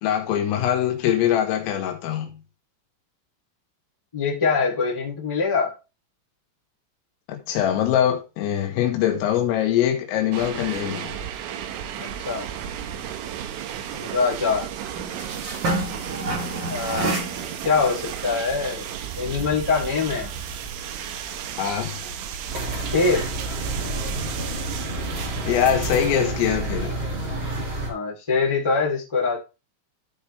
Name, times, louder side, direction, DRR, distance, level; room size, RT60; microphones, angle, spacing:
voice 1, 0.0-2.4 7.3-11.1 21.6-21.9 25.5-26.9, left 10 dB, 80° left, 4.3 m, -23 dB
voice 2, 4.1-5.7 12.0-12.5 13.9-14.7 16.7-18.9 19.2-20.3 22.0-22.1 22.9-23.3 27.9-29.4, left 4 dB, 10° left, 2.0 m, -24 dB
sound 1, 10.3-26.3, right 9 dB, 80° right, 3.4 m, -34 dB
sound 2, 13.0-24.2, right 1 dB, 60° right, 1.1 m, -34 dB
sound 3, 22.5-27.9, right 2 dB, 35° right, 2.3 m, -29 dB
14.0 x 4.9 x 3.4 m
omnidirectional pair, 5.9 m